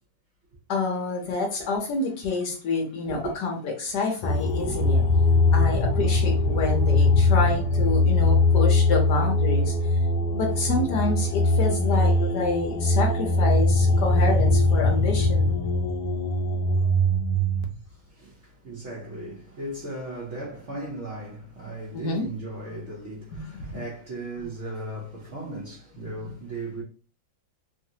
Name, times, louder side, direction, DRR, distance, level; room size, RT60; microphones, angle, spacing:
voice 1, 0.7-5.0 5.5-9.9 10.3-15.5 21.9-22.3 23.3-23.7, left 3 dB, 65° left, 1.1 m, -28 dB
sound 1, 4.2-17.6, left 2 dB, 85° left, 0.8 m, -21 dB
voice 2, 17.9-26.8, right 1 dB, 60° right, 0.7 m, -37 dB
3.1 x 2.4 x 2.7 m
omnidirectional pair, 2.1 m